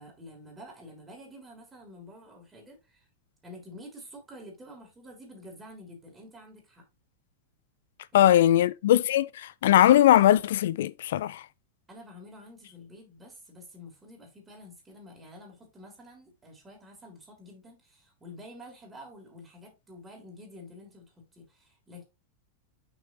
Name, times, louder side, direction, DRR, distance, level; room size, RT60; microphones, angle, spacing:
voice 1, 0.0-3.1 3.4-6.8 11.9-22.0, left 1 dB, 15° right, 3.2 m, -49 dB
voice 2, 8.1-11.4, left 12 dB, 55° left, 0.4 m, -20 dB
6.3 x 5.7 x 3.0 m
figure-of-eight pair, 90°, 0 cm